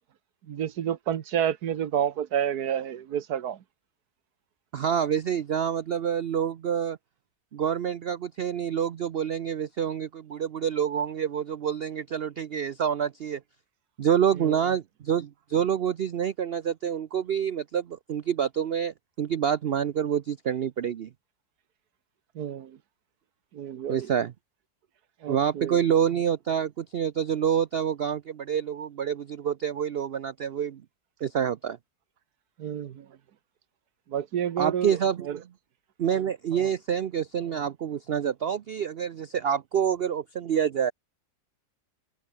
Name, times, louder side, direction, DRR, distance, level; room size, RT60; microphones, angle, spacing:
voice 1, 0.5-3.6 14.4-14.6 22.3-22.8 23.5-24.1 25.2-25.8 32.6-33.1 34.1-35.0 35.2-35.4 36.5-36.7, right 9 dB, 70° right, 1.5 m, -30 dB
voice 2, 4.7-7.0 7.5-13.4 14.0-21.1 23.9-24.3 25.3-30.8 31.2-31.8 34.6-35.4 36.0-40.9, right 8 dB, 90° right, 0.5 m, -27 dB
omnidirectional pair, 1.8 m